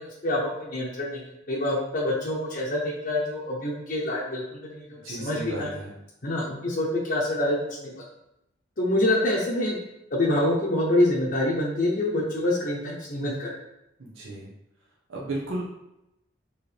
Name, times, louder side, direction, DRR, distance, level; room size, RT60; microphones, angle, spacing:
voice 1, 0.0-5.7 6.2-7.9 8.8-9.8 10.1-13.6, left 1 dB, 50° left, -5 dB, 0.8 m, -26 dB
voice 2, 4.9-5.9 14.0-14.5 15.1-15.6, right 2 dB, 85° right, -5 dB, 0.9 m, -34 dB
4.6 x 3.1 x 3.3 m, 0.88 s
head